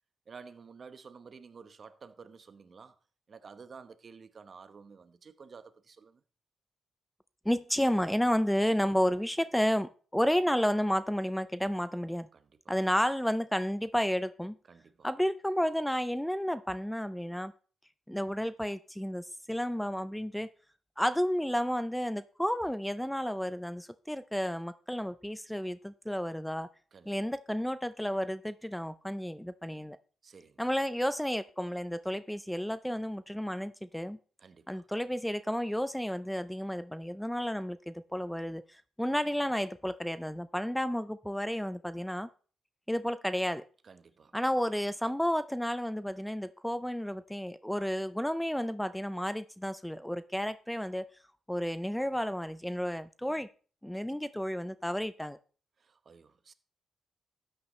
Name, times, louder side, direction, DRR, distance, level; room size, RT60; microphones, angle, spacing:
voice 1, 0.3-2.9 3.3-6.2 12.3-12.8 14.7-15.1 26.9-27.2 30.2-30.7 34.4-34.9 43.8-44.4 55.8-56.5, right 5 dB, 45° right, 1.0 m, -52 dB
voice 2, 7.5-12.3 12.7-14.6 15.0-17.5 18.1-20.5 21.0-26.7 27.1-30.0 30.6-34.2 34.7-42.3 42.9-43.6 44.3-51.1 51.5-53.5 53.8-55.4, equal, 5° left, 0.4 m, -31 dB
12.5 x 8.8 x 3.2 m
cardioid pair, 85°, 0 cm